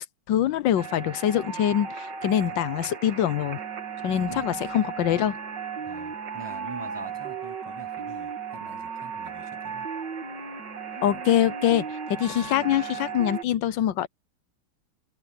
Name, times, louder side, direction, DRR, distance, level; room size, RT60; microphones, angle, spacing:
voice 1, 0.0-3.6 4.0-5.4 11.0-14.1, left 11 dB, 70° left, 1.5 m, -24 dB
sound 1, 0.8-13.4, right 6 dB, 60° right, 2.4 m, -35 dB
voice 2, 4.1-4.4 5.8-9.9 12.5-12.6, right 3 dB, 15° right, 0.9 m, -45 dB
omnidirectional pair, 2.2 m